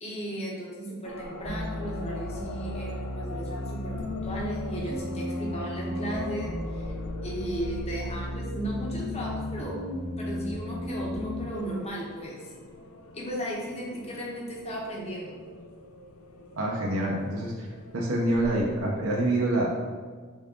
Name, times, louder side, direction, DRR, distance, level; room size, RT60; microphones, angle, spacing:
voice 1, 0.0-9.8 10.2-12.5 13.1-15.4, right 1 dB, 30° left, -3 dB, 0.9 m, -36 dB
sound 1, 1.0-18.8, left 1 dB, 75° left, 0.5 m, -44 dB
sound 2, 1.4-11.4, left 1 dB, 10° right, 1.2 m, -34 dB
voice 2, 16.5-17.7 17.9-19.7, right 1 dB, 65° right, -2 dB, 0.7 m, -26 dB
4.0 x 3.5 x 3.6 m, 1.5 s
head